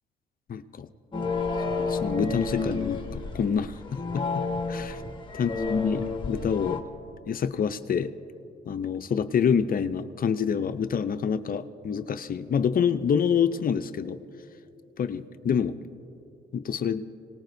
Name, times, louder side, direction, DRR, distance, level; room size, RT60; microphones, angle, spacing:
voice 1, 0.5-0.9 1.7-3.0 3.3-4.9 5.4-6.8 7.3-8.1 8.7-14.2 15.0-15.8 16.5-17.0, left 7 dB, 45° left, 10 dB, 0.6 m, -27 dB
sound 1, 1.1-6.8, left 3 dB, 25° left, 1.4 m, -30 dB
26.0 x 19.0 x 2.7 m, 2.8 s
cardioid pair, 90°, 20 cm